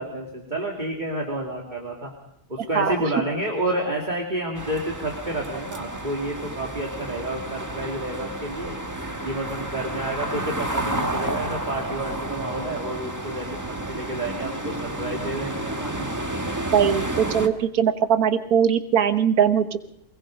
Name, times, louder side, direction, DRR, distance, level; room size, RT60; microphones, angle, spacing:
voice 1, 0.0-2.1 2.5-8.8 9.2-16.1, right 1 dB, 30° right, 0 dB, 2.8 m, -30 dB
sound 1, 4.5-17.5, right 1 dB, 10° right, 1.5 m, -31 dB
voice 2, 16.7-19.9, right 8 dB, 80° right, 9 dB, 1.7 m, -21 dB
24.0 x 21.5 x 5.3 m, 0.77 s
omnidirectional pair, 1.5 m